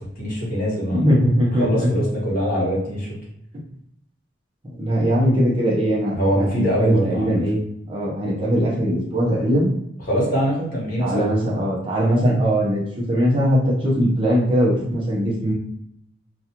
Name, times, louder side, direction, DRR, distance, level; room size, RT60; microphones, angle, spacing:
voice 1, 0.2-1.1 1.6-3.1 6.1-7.4 10.1-11.3, equal, 50° left, -6 dB, 1.2 m, -23 dB
voice 2, 0.9-1.9 4.8-7.6 7.9-9.7 11.0-12.8 13.1-15.5, equal, 30° right, -5 dB, 0.7 m, -20 dB
2.3 x 2.3 x 2.9 m, 0.77 s
head